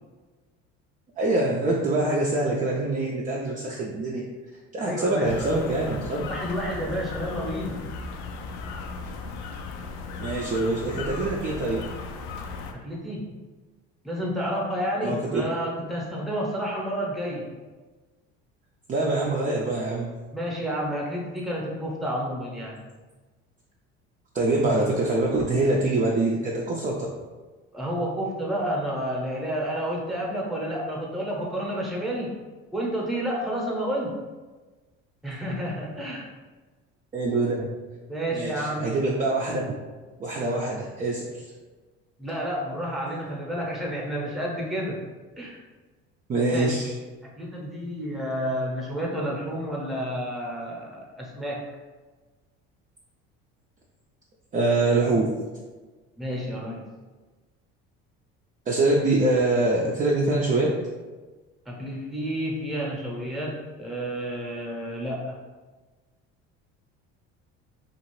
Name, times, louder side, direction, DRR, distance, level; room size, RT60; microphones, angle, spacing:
voice 1, 1.2-4.2 4.7-6.2 10.1-11.8 15.0-15.4 18.9-20.1 24.3-26.9 37.1-37.7 38.3-39.8 40.2-41.4 46.3-46.9 54.5-55.3 58.7-60.7, right 2 dB, 25° right, -3 dB, 0.4 m, -24 dB
voice 2, 4.8-5.3 6.3-7.9 12.7-13.4 14.0-17.5 20.3-22.8 27.7-32.3 32.7-34.1 35.2-36.3 38.1-39.0 42.2-45.0 45.4-45.6 46.5-46.8 47.2-51.7 56.2-56.8 61.7-65.3, equal, ahead, -3 dB, 0.8 m, -30 dB
sound 1, 5.2-12.7, left 4 dB, 65° left, 0.4 m, -36 dB
2.7 x 2.4 x 3.1 m, 1.3 s
supercardioid pair, 90°, 30 cm